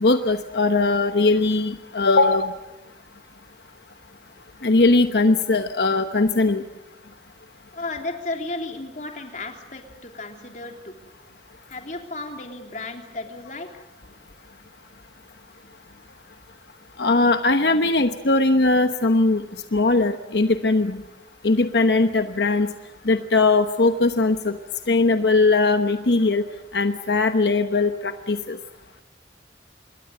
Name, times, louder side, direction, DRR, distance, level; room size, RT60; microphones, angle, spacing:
voice 1, 0.0-2.5 4.6-6.6 17.0-19.4 19.7-21.0 21.4-22.7 23.0-24.6 24.9-26.4 26.7-28.6, left 3 dB, 80° left, 7 dB, 1.1 m, -20 dB
voice 2, 7.7-11.0 11.7-14.1, left 2 dB, 45° left, 3 dB, 3.5 m, -34 dB
27.0 x 22.0 x 7.9 m, 1.0 s
head